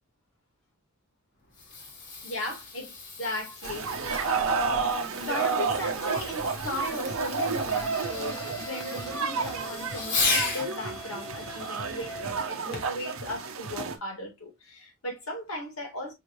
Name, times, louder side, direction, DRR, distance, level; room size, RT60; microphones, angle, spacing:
Fireworks, 1.4-10.7 12.7-13.1 13.8-13.9, left 3 dB, 55° left, 1.4 m, -35 dB
voice 1, 2.2-3.9 4.4-4.7 5.2-16.1, left 1 dB, 75° left, 2.1 m, -37 dB
sound 1, 3.6-14.0, right 4 dB, 70° right, 0.7 m, -31 dB
Wind instrument woodwind instrument, 7.7-12.3, equal, 20° left, 0.5 m, -42 dB
5.6 x 3.1 x 2.6 m
head